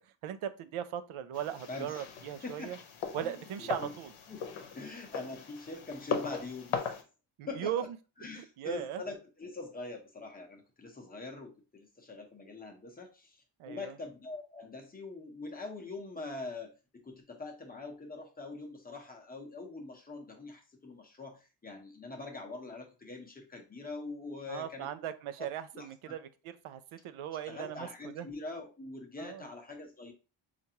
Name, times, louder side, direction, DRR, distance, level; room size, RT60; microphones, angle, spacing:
voice 1, 0.2-2.8 3.1-4.1 7.4-7.9 8.4-9.0 13.6-13.9 24.5-28.3 29.2-29.5, right 10 dB, 90° right, 12 dB, 0.5 m, -38 dB
sound 1, 1.3-7.0, left 6 dB, 85° left, 0.8 m, -39 dB
voice 2, 1.7-2.0 2.4-2.7 3.2-3.9 4.3-6.9 7.5-7.9 8.2-16.7 17.0-24.9 25.4-25.5 25.7-26.1 27.4-30.1, left 3 dB, 20° left, 1 dB, 0.7 m, -43 dB
4.5 x 2.5 x 2.7 m, 0.32 s
wide cardioid pair, 155°, 48 cm